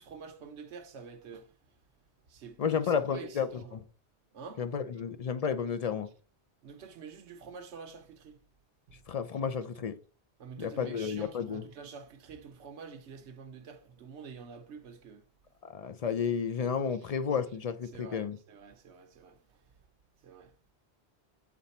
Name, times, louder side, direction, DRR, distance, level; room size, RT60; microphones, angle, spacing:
voice 1, 0.0-1.5 2.3-3.8 4.3-4.6 6.6-8.4 8.9-9.0 10.4-15.2 17.9-19.4 20.2-20.5, right 5 dB, 85° right, 1.1 m, -47 dB
voice 2, 2.6-3.8 4.6-6.1 9.1-10.0 10.6-11.7 15.7-18.4, left 7 dB, 50° left, 0.4 m, -32 dB
7.2 x 3.9 x 4.1 m
omnidirectional pair, 1.1 m